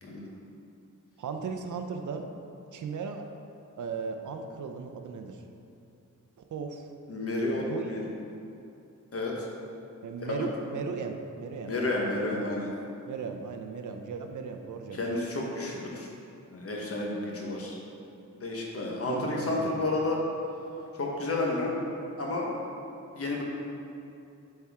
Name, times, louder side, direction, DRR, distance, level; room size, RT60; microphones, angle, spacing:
voice 1, 1.2-2.3 2.7-3.3 3.8-5.4 6.5-6.8 7.7-7.9 10.0-11.7 13.1-15.0 19.1-19.7 20.8-20.9, right 5 dB, 75° right, 5 dB, 0.6 m, -36 dB
voice 2, 7.1-8.1 9.1-9.5 10.2-10.5 11.7-12.7 14.9-16.1 16.5-17.8 18.4-20.2 20.9-21.7 22.2-22.6 23.1-23.4, left 2 dB, 50° left, -2 dB, 1.1 m, -31 dB
8.0 x 4.4 x 3.6 m, 2.7 s
wide cardioid pair, 135°, 30 cm